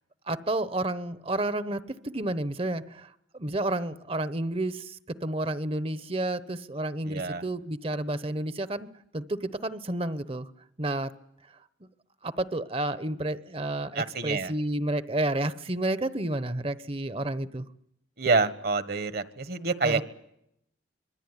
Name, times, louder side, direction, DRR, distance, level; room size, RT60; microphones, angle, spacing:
voice 1, 0.3-8.9 9.1-10.5 10.8-11.1 12.2-17.7 19.8-20.0, right 1 dB, 30° right, 14 dB, 0.9 m, -30 dB
voice 2, 7.0-7.4 13.9-14.5 18.2-20.0, right 4 dB, 55° right, 12 dB, 1.4 m, -27 dB
25.0 x 22.0 x 9.9 m, 0.79 s
head